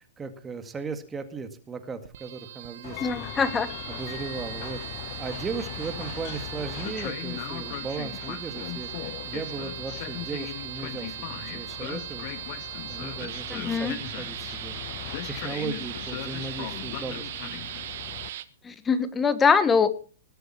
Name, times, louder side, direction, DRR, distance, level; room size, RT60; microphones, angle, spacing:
voice 1, 0.0-3.2 3.9-17.6, right 5 dB, 15° right, 9 dB, 1.9 m, -37 dB
sound 1, 2.0-18.4, right 12 dB, 60° right, 1.3 m, -39 dB
Train, 2.8-18.3, left 15 dB, 45° left, 0.9 m, -38 dB
voice 2, 3.0-3.7 13.5-14.0 18.6-19.9, left 5 dB, 15° left, 13 dB, 1.5 m, -23 dB
20.0 x 8.0 x 6.0 m, 0.40 s
hypercardioid pair, 130°, 0 cm